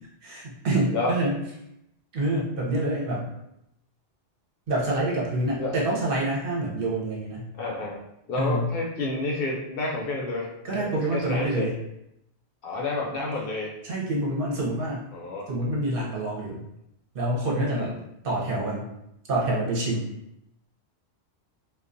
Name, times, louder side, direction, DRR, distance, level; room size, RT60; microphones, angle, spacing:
voice 1, 0.2-1.4 2.1-3.3 4.7-7.5 8.4-8.7 10.6-11.8 13.8-15.0 15.5-16.6 17.1-17.9 18.2-18.9 19.3-20.1, right 1 dB, 60° right, -4 dB, 0.8 m, -27 dB
voice 2, 7.6-8.0 8.3-11.7 12.6-13.7 15.1-15.5 17.5-17.9, left 2 dB, 65° left, -2 dB, 0.7 m, -30 dB
2.3 x 2.2 x 2.5 m, 0.81 s
omnidirectional pair, 1.1 m